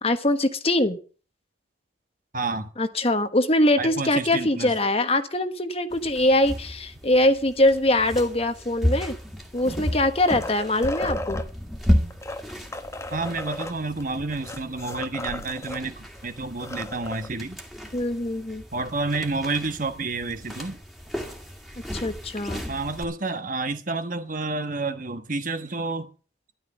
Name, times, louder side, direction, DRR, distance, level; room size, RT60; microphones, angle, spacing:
voice 1, 0.0-1.0 2.8-9.2 9.5-11.4 17.9-18.6 21.9-22.6, left 1 dB, 30° left, 1.2 m, -22 dB
voice 2, 2.3-2.7 3.8-4.8 13.1-17.6 18.7-20.8 22.7-26.1, right 3 dB, 45° right, 1.3 m, -29 dB
sound 1, 5.9-23.1, equal, ahead, 2.3 m, -33 dB
sound 2, 9.5-11.5 12.1-15.8 16.2-16.3 16.5-17.3 18.8-18.9, left 1 dB, 15° left, 0.9 m, -35 dB
13.0 x 11.5 x 5.5 m
head